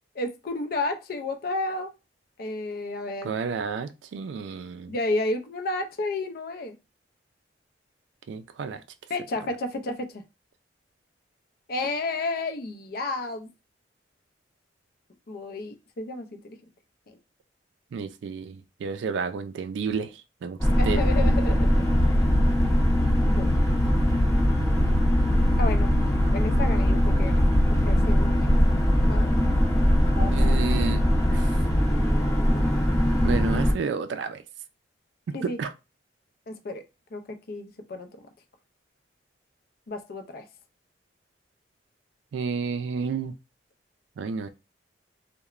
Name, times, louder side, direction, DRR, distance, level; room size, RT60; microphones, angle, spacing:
voice 1, 0.2-1.9 2.4-3.3 4.9-6.8 9.1-10.2 11.7-13.5 15.3-16.6 20.8-21.8 23.3-23.5 25.6-25.9 26.3-27.5 27.9-28.6 29.1-29.3 30.2-30.6 35.3-35.6 36.5-36.8 37.1-37.2 37.5-38.1 39.9-40.4, left 2 dB, 55° left, 0.4 m, -31 dB
voice 2, 3.2-5.0 8.3-8.8 17.9-20.6 20.8-21.0 30.2-31.0 31.3-31.6 33.2-34.4 35.4-35.7 42.3-43.3 44.2-44.5, right 5 dB, 70° right, 0.3 m, -31 dB
sound 1, 20.6-33.7, equal, 15° left, 0.7 m, -21 dB
2.9 x 2.1 x 2.3 m
head